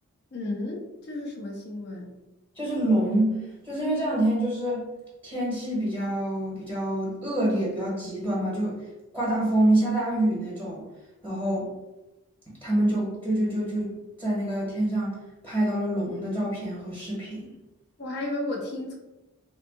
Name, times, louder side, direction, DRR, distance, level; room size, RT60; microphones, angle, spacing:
voice 1, 0.3-2.1 18.0-18.9, left 2 dB, 50° left, 0 dB, 0.7 m, -33 dB
voice 2, 2.6-4.8 5.2-8.8 9.1-10.8 11.2-11.7 12.5-13.9 14.2-15.2 15.4-17.5, right 1 dB, 10° left, -6 dB, 1.0 m, -26 dB
2.8 x 2.3 x 3.5 m, 1.0 s
head